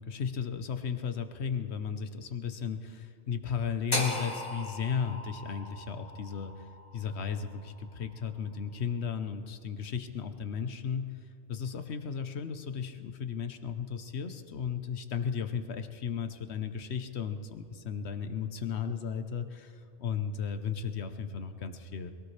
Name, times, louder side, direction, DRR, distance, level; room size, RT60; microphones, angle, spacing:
voice 1, 0.0-11.1 11.5-22.1, left 7 dB, 65° left, 9 dB, 1.2 m, -35 dB
sound 1, 3.9-8.0, left 1 dB, 20° left, 1.7 m, -37 dB
22.5 x 17.5 x 3.3 m, 2.6 s
omnidirectional pair, 1.3 m